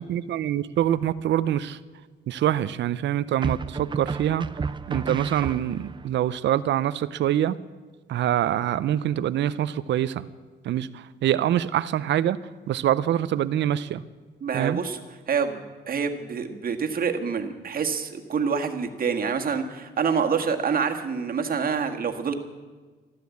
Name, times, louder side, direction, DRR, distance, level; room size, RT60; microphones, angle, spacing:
voice 1, 0.0-1.8 2.3-4.5 4.9-7.6 8.1-10.3 10.6-12.4 12.7-14.0 14.5-14.8, right 11 dB, 65° right, 15 dB, 0.6 m, -25 dB
sound 1, 0.8-1.3 3.4-6.1, right 4 dB, 25° right, 0.6 m, -32 dB
voice 2, 14.4-15.0 15.3-22.3, right 6 dB, 45° right, 5 dB, 1.7 m, -27 dB
13.0 x 13.0 x 8.4 m, 1.4 s
cardioid pair, 90°, 20 cm